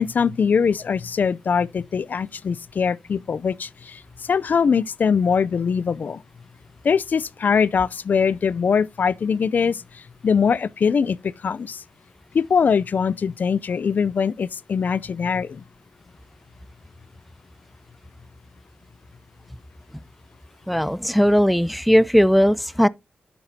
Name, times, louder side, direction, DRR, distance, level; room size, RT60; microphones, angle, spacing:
voice 1, 0.0-6.2 6.8-11.8 12.3-15.6, left 6 dB, 65° left, 0.4 m, -22 dB
voice 2, 20.7-22.9, equal, ahead, 0.4 m, -18 dB
10.0 x 6.9 x 2.7 m
cardioid pair, 55°, 3 cm